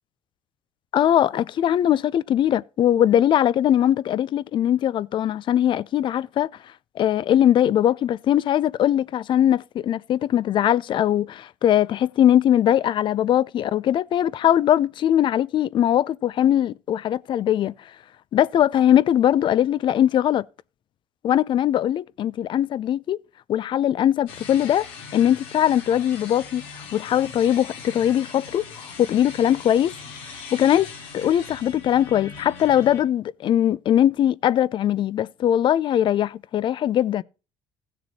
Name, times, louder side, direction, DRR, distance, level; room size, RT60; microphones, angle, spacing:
voice 1, 0.9-6.5 7.0-17.7 18.3-20.4 21.2-23.2 23.5-24.9 25.1-29.9 30.5-30.9 31.1-37.2, left 11 dB, 45° left, 0.4 m, -21 dB
sound 1, 24.3-33.0, left 5 dB, 90° left, 2.3 m, -40 dB
16.0 x 6.9 x 2.8 m
supercardioid pair, 90°, 11 cm